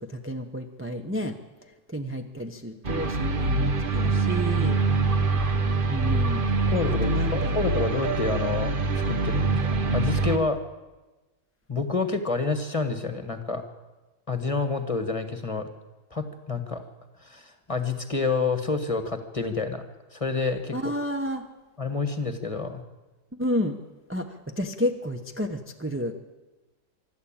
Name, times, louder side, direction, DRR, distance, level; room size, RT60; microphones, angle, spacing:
voice 1, 0.0-1.4 1.9-4.8 5.9-6.4 6.9-7.6 20.7-21.4 23.4-23.8 24.1-26.1, equal, 10° right, 3 dB, 0.8 m, -31 dB
sound 1, 2.8-10.4, right 3 dB, 35° right, 1.0 m, -24 dB
voice 2, 6.7-10.6 11.7-13.6 14.3-15.7 16.1-16.9 17.2-19.8 20.1-20.9 21.8-22.8, left 4 dB, 20° left, 8 dB, 1.5 m, -28 dB
25.0 x 12.5 x 8.9 m, 1.1 s
omnidirectional pair, 1.9 m